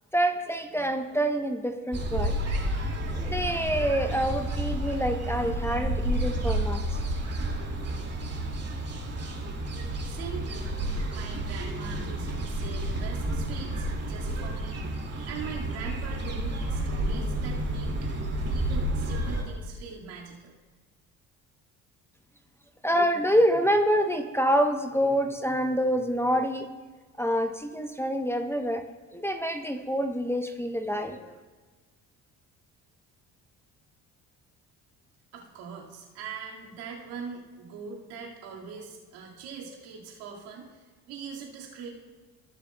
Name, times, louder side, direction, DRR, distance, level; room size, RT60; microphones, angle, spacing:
voice 1, 0.1-2.4 3.1-6.8 22.8-26.7 27.2-28.8 29.1-31.4, equal, 5° left, 6 dB, 0.8 m, -26 dB
sound 1, 1.9-19.4, right 1 dB, 40° right, 2.2 m, -30 dB
voice 2, 10.0-14.8 15.3-18.0 18.5-20.5 35.3-40.8 41.1-41.9, right 5 dB, 80° right, -3 dB, 2.1 m, -42 dB
17.5 x 6.9 x 2.2 m, 1.4 s
supercardioid pair, 65°, 37 cm